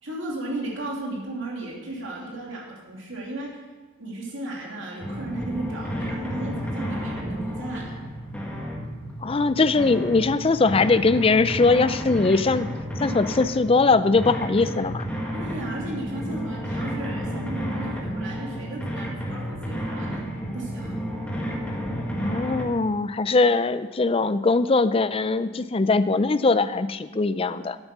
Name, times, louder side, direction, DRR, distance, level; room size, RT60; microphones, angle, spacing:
voice 1, 0.0-3.6 4.0-7.9 15.3-21.0, right 1 dB, 60° right, -2 dB, 2.7 m, -35 dB
sound 1, 5.0-22.6, equal, 5° left, 1.6 m, -31 dB
voice 2, 9.2-12.7 13.0-15.1 22.1-27.8, left 3 dB, 25° left, 13 dB, 0.4 m, -21 dB
12.0 x 9.1 x 6.0 m, 1.3 s
head